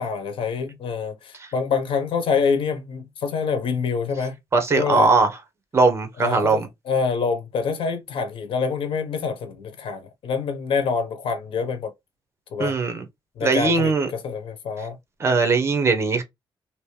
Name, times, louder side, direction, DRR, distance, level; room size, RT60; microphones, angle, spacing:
voice 1, 0.0-4.3 4.7-5.1 6.2-11.9 12.5-12.8 13.4-15.0, left 5 dB, 75° left, 1.1 m, -26 dB
voice 2, 4.5-5.3 5.7-6.7 12.6-13.0 13.4-14.1 15.2-16.2, right 3 dB, 30° right, 1.2 m, -20 dB
3.2 x 3.0 x 3.2 m
cardioid pair, 110°, 9 cm